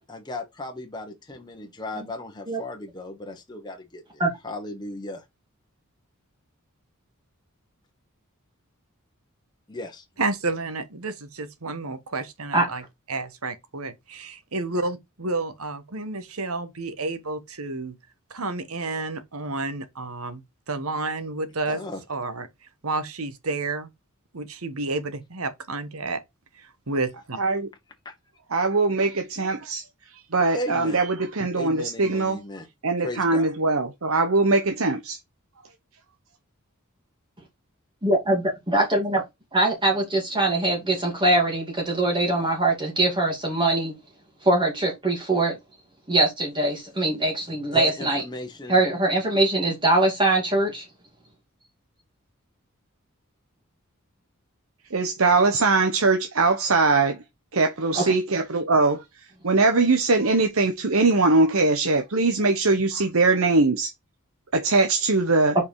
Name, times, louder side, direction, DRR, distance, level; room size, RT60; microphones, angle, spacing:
voice 1, 0.1-4.0 4.4-5.2 9.7-10.0 21.7-22.0 28.0-28.1 30.5-31.0 31.6-32.7 33.0-33.5 47.7-48.8, left 2 dB, 20° left, 1.4 m, -35 dB
voice 2, 10.2-18.0 18.3-20.4 20.7-21.8 22.1-22.5 22.8-23.9 24.3-26.2 26.6-27.4, right 3 dB, 85° right, 1.4 m, -30 dB
voice 3, 27.4-27.7 28.5-32.4 32.8-35.2 54.9-57.2 57.5-63.9 64.5-65.6, right 3 dB, 70° right, 1.1 m, -21 dB
voice 4, 38.0-39.2 39.5-43.9 44.4-45.6 46.1-48.2 48.7-50.8 58.0-58.1, right 2 dB, 20° right, 2.6 m, -22 dB
5.3 x 5.1 x 4.8 m
head